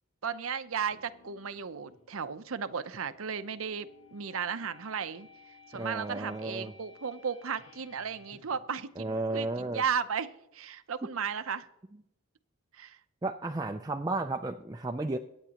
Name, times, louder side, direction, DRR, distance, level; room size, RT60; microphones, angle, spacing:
voice 1, 0.2-5.3 5.7-11.7 12.7-13.0, right 6 dB, 75° right, 12 dB, 0.7 m, -35 dB
sound 1, 0.7-9.9, left 3 dB, 75° left, 1.5 m, -57 dB
voice 2, 5.7-6.7 9.0-9.8 13.2-15.2, right 2 dB, 15° right, 4 dB, 0.4 m, -33 dB
23.0 x 8.9 x 2.9 m, 0.86 s
head